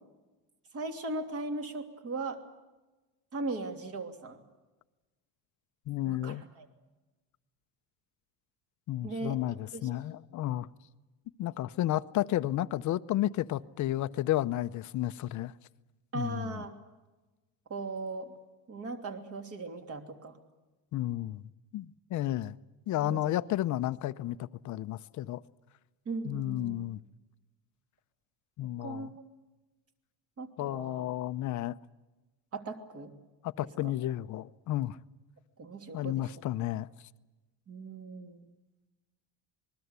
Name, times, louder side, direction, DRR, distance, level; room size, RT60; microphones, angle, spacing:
voice 1, 0.7-2.4 3.3-4.4 6.0-6.7 9.0-9.4 9.7-9.9 16.1-16.7 17.7-18.3 18.7-20.4 23.0-23.4 26.0-26.8 28.8-29.1 30.4-31.0 32.5-33.1 33.8-33.9 35.6-36.3 37.7-38.5, right 3 dB, 35° right, 3.0 m, -38 dB
voice 2, 5.9-6.4 8.9-10.7 11.4-15.5 16.1-16.6 20.9-22.6 22.9-25.4 26.2-27.0 28.6-29.1 30.6-31.8 33.4-35.0 35.9-36.9, left 14 dB, 45° left, 0.8 m, -32 dB
27.0 x 21.0 x 8.2 m
cardioid pair, 165°, 39 cm